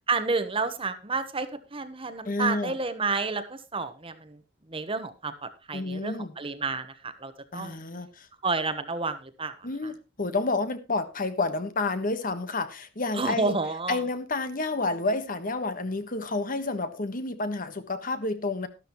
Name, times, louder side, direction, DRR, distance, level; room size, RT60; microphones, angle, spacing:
voice 1, 0.1-4.4 4.7-7.8 8.4-9.6 9.8-9.9 13.1-14.0, right 4 dB, 30° right, 10 dB, 1.2 m, -30 dB
voice 2, 2.2-2.8 5.7-6.3 7.5-8.3 9.6-13.6 13.9-18.7, left 3 dB, 45° left, 10 dB, 1.4 m, -30 dB
12.5 x 12.5 x 3.1 m, 0.27 s
head